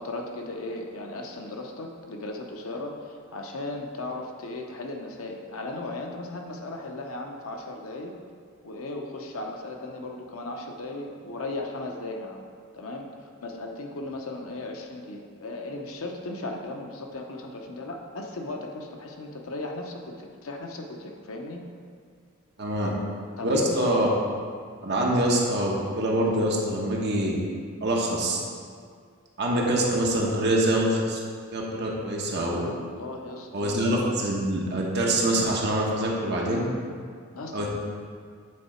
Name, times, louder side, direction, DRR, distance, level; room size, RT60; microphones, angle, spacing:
voice 1, 0.0-8.2 8.6-12.4 12.7-21.7 22.8-22.9 23.4-23.9 25.0-25.2 32.7-33.8 37.3-37.7, left 2 dB, 80° left, 2 dB, 0.8 m, -36 dB
voice 2, 22.6-22.9 23.4-24.1 24.8-27.4 27.8-28.4 29.4-31.2 31.5-32.7 33.5-36.6 37.5-37.7, right 1 dB, 55° right, -2 dB, 1.1 m, -25 dB
8.6 x 3.7 x 4.4 m, 2.1 s
head